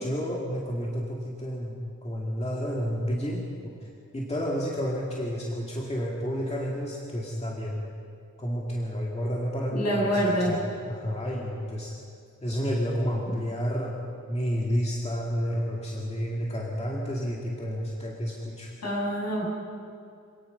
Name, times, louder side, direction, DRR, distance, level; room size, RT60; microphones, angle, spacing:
voice 1, 0.0-7.8 8.4-11.9 12.4-13.9 14.3-18.7, equal, 20° left, -4 dB, 2.2 m, -30 dB
voice 2, 9.7-10.6 18.8-19.5, equal, 55° left, -3 dB, 6.7 m, -26 dB
26.5 x 19.0 x 5.5 m, 2.4 s
wide cardioid pair, 170°, 31 cm